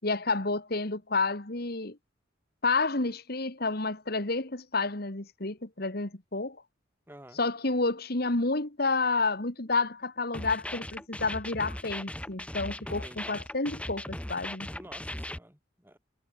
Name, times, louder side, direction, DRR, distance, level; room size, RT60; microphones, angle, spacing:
voice 1, 0.0-2.0 2.6-6.6 7.4-14.7, left 3 dB, 50° left, 2.1 m, -30 dB
voice 2, 7.1-7.4 12.8-13.4 14.7-16.0, right 1 dB, 10° right, 7.9 m, -51 dB
sound 1, 10.3-15.4, left 1 dB, 5° left, 1.3 m, -38 dB
head